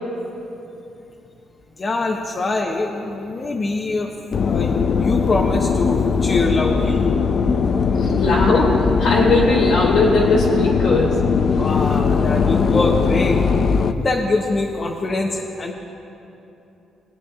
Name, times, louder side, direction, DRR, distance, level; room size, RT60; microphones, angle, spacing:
voice 1, 1.8-4.1 4.3-7.0 7.9-8.1 11.6-13.4 13.9-15.7, left 2 dB, 35° left, 0 dB, 0.8 m, -24 dB
sound 1, 4.3-13.9, left 5 dB, 50° left, 0.4 m, -19 dB
voice 2, 8.0-11.3, left 2 dB, 75° left, -2 dB, 2.3 m, -19 dB
22.0 x 8.8 x 2.4 m, 2.9 s
cardioid pair, 90°, 0 cm